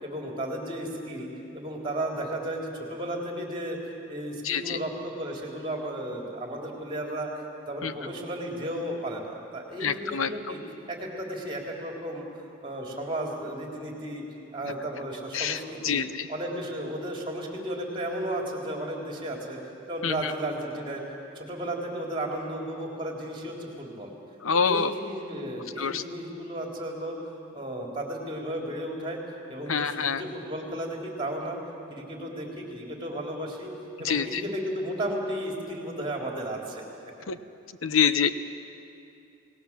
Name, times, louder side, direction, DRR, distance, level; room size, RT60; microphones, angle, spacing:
voice 1, 0.0-1.3 1.5-10.6 10.9-12.2 12.6-14.2 14.5-16.0 16.3-19.6 19.9-21.0 21.3-24.1 24.5-27.2 27.5-29.2 29.5-31.6 31.9-33.7 34.0-36.8, right 1 dB, 25° right, 0 dB, 3.4 m, -34 dB
voice 2, 4.4-4.8 7.8-7.9 9.8-10.3 14.6-14.7 15.3-16.3 20.0-20.3 24.4-24.9 25.8-26.0 29.7-30.2 34.0-34.4 37.3-37.4 37.8-38.3, left 6 dB, 80° left, 12 dB, 0.9 m, -26 dB
29.0 x 18.5 x 7.4 m, 2.7 s
head